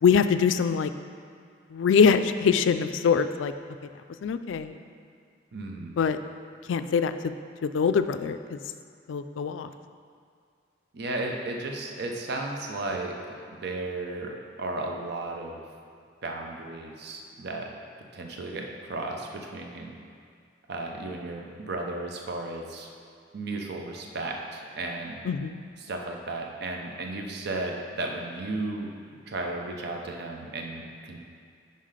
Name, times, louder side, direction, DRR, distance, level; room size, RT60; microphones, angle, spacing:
voice 1, 0.0-0.9 1.7-3.5 4.2-4.8 6.0-6.2 6.7-7.3 7.6-8.6 9.1-9.7 25.3-25.6, left 6 dB, 70° left, 10 dB, 0.3 m, -23 dB
voice 2, 5.5-6.0 10.9-15.6 16.2-17.7 18.1-19.9 20.7-22.9 23.3-25.2 25.8-31.2, right 2 dB, 60° right, 1 dB, 0.6 m, -34 dB
5.7 x 5.4 x 4.9 m, 2.2 s
head